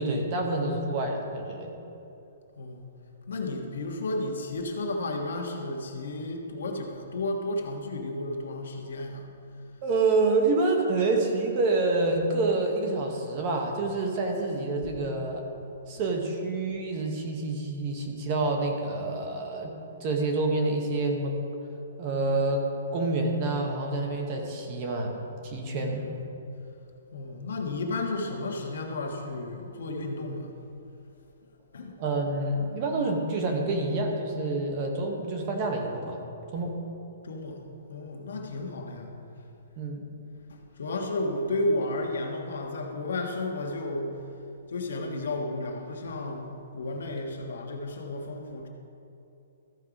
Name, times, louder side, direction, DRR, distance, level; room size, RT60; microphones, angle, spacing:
voice 1, 0.0-1.7 9.8-15.4 15.9-19.8 20.0-21.4 22.0-25.2 25.4-26.1 32.0-36.2 36.5-36.8 39.8-40.1, right 2 dB, 25° right, 2 dB, 0.8 m, -27 dB
voice 2, 2.6-2.9 3.3-9.3 25.8-26.3 27.1-30.5 31.7-32.0 36.6-36.7 37.2-37.6 37.9-39.1 40.5-44.2 44.7-48.7, left 2 dB, 70° left, 2 dB, 1.4 m, -33 dB
14.0 x 5.5 x 5.0 m, 2.8 s
hypercardioid pair, 180°, 0 cm